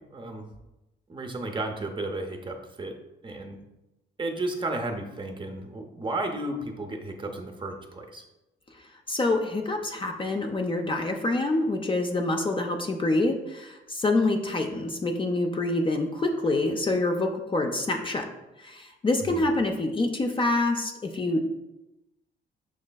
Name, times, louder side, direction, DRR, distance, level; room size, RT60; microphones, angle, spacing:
voice 1, 0.1-0.5 1.1-2.9 3.2-3.6 4.2-8.2 19.2-19.5, right 2 dB, 25° right, 4 dB, 0.6 m, -33 dB
voice 2, 9.1-18.2 18.6-21.4, left 2 dB, 25° left, 3 dB, 0.5 m, -26 dB
6.2 x 3.1 x 2.2 m, 0.96 s
cardioid pair, 90°, 20 cm